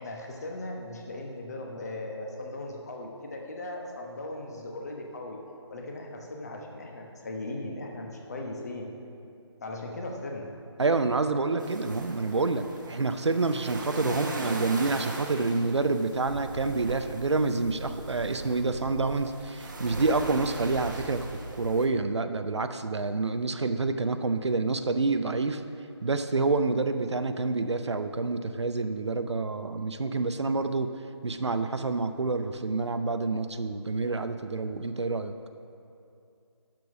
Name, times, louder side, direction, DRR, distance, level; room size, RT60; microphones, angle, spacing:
voice 1, 0.0-5.4 5.7-8.9 9.6-10.5 13.9-14.2, left 2 dB, 35° left, 1 dB, 1.1 m, -38 dB
voice 2, 10.8-21.3 21.6-25.6 26.0-30.9 31.2-35.3, right 3 dB, 70° right, 9 dB, 0.6 m, -28 dB
sound 1, 11.6-21.9, right 2 dB, 40° right, 1.0 m, -39 dB
12.0 x 4.6 x 6.2 m, 2.6 s
figure-of-eight pair, 160°, 15 cm